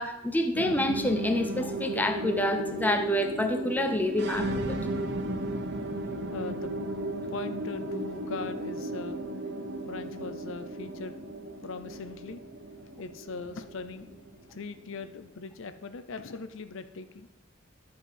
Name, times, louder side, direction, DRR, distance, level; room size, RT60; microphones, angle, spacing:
voice 1, 0.0-4.8, left 1 dB, 10° left, 5 dB, 0.6 m, -28 dB
sound 1, 0.5-15.1, right 1 dB, 50° right, 0.8 m, -35 dB
voice 2, 6.3-6.7 7.3-9.5 9.9-11.2 11.6-12.4 13.0-14.1 14.5-17.3, left 4 dB, 60° left, 10 dB, 0.5 m, -40 dB
11.0 x 4.4 x 5.4 m, 0.97 s
head